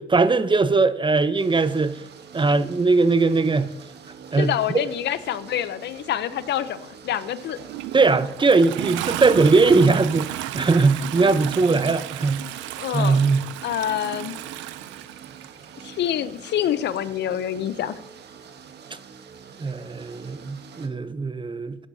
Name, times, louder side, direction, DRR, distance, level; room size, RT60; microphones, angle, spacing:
voice 1, 0.0-2.0 2.3-3.7 4.3-4.8 7.9-12.4 12.9-13.4 19.6-21.8, right 3 dB, 25° right, 0.7 m, -20 dB
sound 1, 1.4-20.9, right 6 dB, 65° right, 1.1 m, -45 dB
voice 2, 4.3-7.6 12.8-13.2 13.6-14.4 15.8-17.9, left 11 dB, 70° left, 0.6 m, -26 dB
Toilet flush, 7.5-15.9 17.0-17.1, right 15 dB, 90° right, 0.4 m, -33 dB
14.5 x 9.9 x 2.8 m
supercardioid pair, 65°, 19 cm